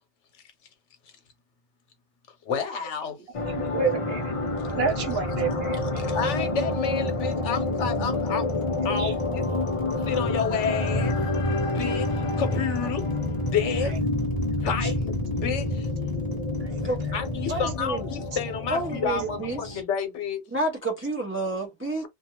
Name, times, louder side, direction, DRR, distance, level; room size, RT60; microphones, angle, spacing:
voice 1, 2.4-3.2 5.1-5.2 6.0-8.5 8.8-9.5 10.0-11.2 11.7-13.1 13.4-14.0 14.6-15.0 15.3-15.9 17.1-20.5, left 6 dB, 75° left, 1.1 m, -30 dB
sound 1, 3.3-19.8, left 2 dB, 40° left, 0.5 m, -28 dB
voice 2, 3.5-4.3 4.7-6.0 9.0-9.1 13.8-14.0 14.8-14.9 16.6-17.2, right 5 dB, 60° right, 1.0 m, -30 dB
sound 2, 4.2-19.4, right 2 dB, 20° left, 1.0 m, -42 dB
voice 3, 17.5-18.0 18.7-19.8 20.5-22.0, right 2 dB, 20° right, 0.4 m, -29 dB
2.5 x 2.3 x 2.8 m
omnidirectional pair, 1.2 m